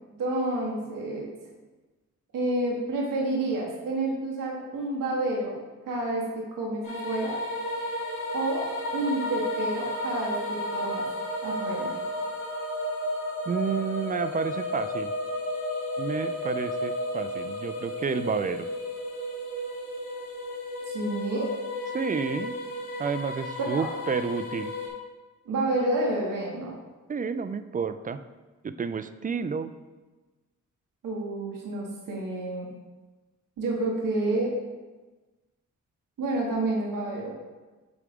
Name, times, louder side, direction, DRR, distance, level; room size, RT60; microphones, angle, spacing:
voice 1, 0.2-1.3 2.3-7.4 8.3-8.6 8.9-11.1 11.4-11.9 20.9-21.5 23.7-23.9 25.4-26.8 31.0-32.7 33.6-34.5 36.2-37.3, right 2 dB, 90° right, -2 dB, 1.2 m, -29 dB
sound 1, 6.8-24.9, left 1 dB, 90° left, 1.6 m, -33 dB
voice 2, 13.5-15.1 16.0-18.7 21.9-22.6 23.0-24.7 27.1-28.2 28.6-29.7, right 5 dB, 25° right, 11 dB, 0.4 m, -30 dB
8.4 x 3.6 x 3.5 m, 1.2 s
cardioid pair, 55°, 32 cm